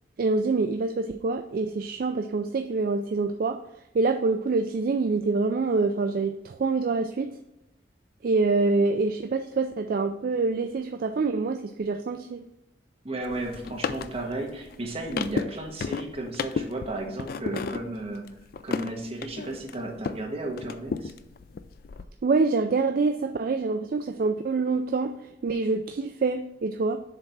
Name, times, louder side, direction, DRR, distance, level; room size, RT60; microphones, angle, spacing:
voice 1, 0.2-3.6 3.9-7.4 8.2-12.5 22.2-27.0, right 3 dB, 50° right, 7 dB, 0.3 m, -26 dB
voice 2, 13.0-18.2 18.6-21.1, right 2 dB, 35° right, 0 dB, 1.3 m, -34 dB
sound 1, 13.2-20.3 20.6-22.1, left 5 dB, 55° left, 0.3 m, -34 dB
7.3 x 3.3 x 5.7 m, 0.87 s
head